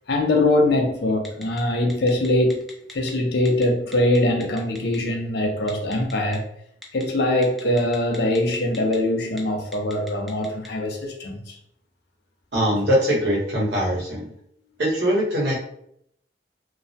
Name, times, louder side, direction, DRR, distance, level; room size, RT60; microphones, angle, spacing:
voice 1, 0.1-2.6 2.9-6.4 6.9-11.6, left 1 dB, 65° left, 0.5 m, -22 dB
Telephone, 1.3-1.6 1.9-3.1 3.5-3.6 3.9-5.0 5.7-6.4 6.8-7.0 7.4-9.0 9.3-9.4 9.7-10.7, left 1 dB, ahead, 0.4 m, -41 dB
voice 2, 12.5-14.3 14.8-15.6, equal, 70° right, 0.9 m, -22 dB
2.3 x 2.1 x 2.6 m
head